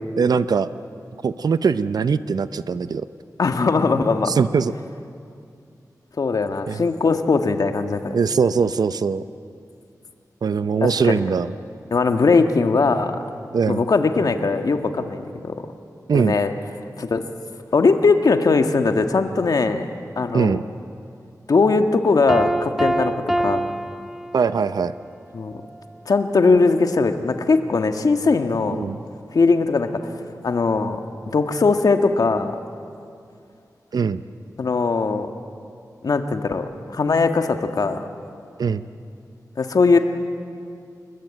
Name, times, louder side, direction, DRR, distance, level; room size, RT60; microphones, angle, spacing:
voice 1, 0.2-0.7 1.2-3.1 4.3-4.7 6.7-6.9 8.1-9.2 10.4-11.5 13.5-13.9 16.1-16.4 20.3-20.6 24.3-24.9 28.7-29.0 33.9-34.2 38.6-38.8, right 5 dB, 80° right, 13 dB, 0.7 m, -21 dB
voice 2, 3.4-4.3 6.2-8.1 10.8-11.2 11.9-13.2 13.7-15.6 16.1-16.5 17.0-17.2 17.7-19.9 20.2-20.6 21.5-23.7 25.3-25.6 26.1-28.8 29.3-29.9 30.4-31.0 31.3-32.5 34.6-35.3 36.0-38.0 39.6-40.0, left 4 dB, 70° left, 6 dB, 1.7 m, -20 dB
Piano, 22.3-24.8, right 1 dB, 5° right, 1.0 m, -25 dB
28.0 x 21.0 x 8.9 m, 2.4 s
wide cardioid pair, 100°, 7 cm